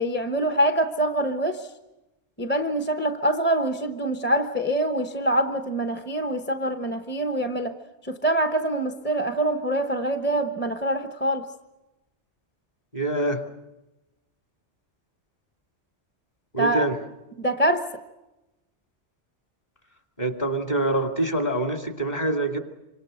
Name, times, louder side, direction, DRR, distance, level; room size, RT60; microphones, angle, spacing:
voice 1, 0.0-1.7 2.4-7.8 8.0-11.5 16.6-16.9 17.4-17.9, right 1 dB, 10° left, 1.1 m, -25 dB
voice 2, 12.9-13.4 16.5-17.0 20.2-22.6, right 2 dB, 35° left, 2.5 m, -25 dB
26.5 x 26.0 x 6.5 m
omnidirectional pair, 1.2 m